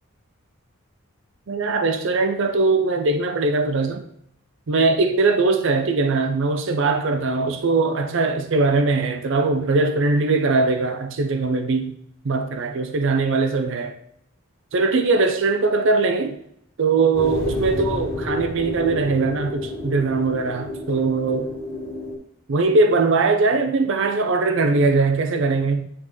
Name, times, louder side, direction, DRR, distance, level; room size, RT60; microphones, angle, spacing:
voice 1, 1.5-4.0 4.7-12.0 12.2-14.0 14.7-16.4 16.8-21.5 22.5-25.9, right 3 dB, 60° right, 7 dB, 0.5 m, -21 dB
sound 1, 17.1-22.2, left 2 dB, 15° left, 1.9 m, -30 dB
9.3 x 3.7 x 3.1 m, 0.70 s
head